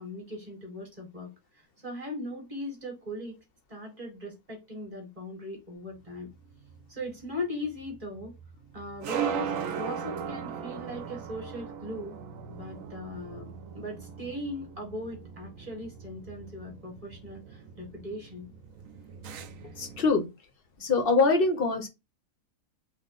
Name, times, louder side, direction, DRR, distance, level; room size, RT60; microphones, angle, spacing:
voice 1, 0.0-3.3 3.7-6.3 6.9-8.3 8.7-12.1 12.5-18.5, left 1 dB, 25° right, 1.1 m, -39 dB
sound 1, 6.0-20.1, right 7 dB, 70° right, 0.9 m, -39 dB
voice 2, 19.8-20.3 20.8-21.9, left 4 dB, 55° left, 0.7 m, -24 dB
3.0 x 2.1 x 3.8 m
omnidirectional pair, 1.6 m